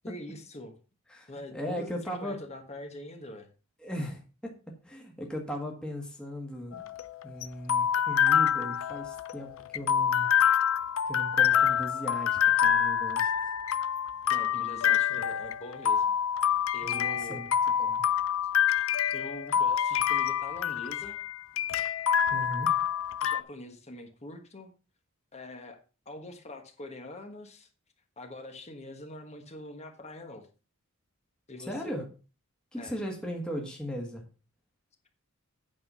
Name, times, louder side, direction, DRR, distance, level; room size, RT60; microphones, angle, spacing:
voice 1, 0.0-0.7 1.3-3.5 14.3-16.1 16.7-17.4 19.1-21.2 23.2-24.7 25.3-25.8 26.0-27.7 28.2-30.5 31.5-31.9 32.8-33.0, left 1 dB, 30° left, 5 dB, 1.4 m, -44 dB
voice 2, 1.1-2.4 3.8-6.8 7.2-10.3 11.1-13.3 14.9-15.0 16.8-18.0 22.3-22.8 31.7-32.0 32.7-34.3, equal, 5° left, 0 dB, 1.6 m, -38 dB
sound 1, 6.7-23.4, left 9 dB, 70° left, 0.5 m, -27 dB
8.8 x 5.9 x 5.5 m, 0.33 s
head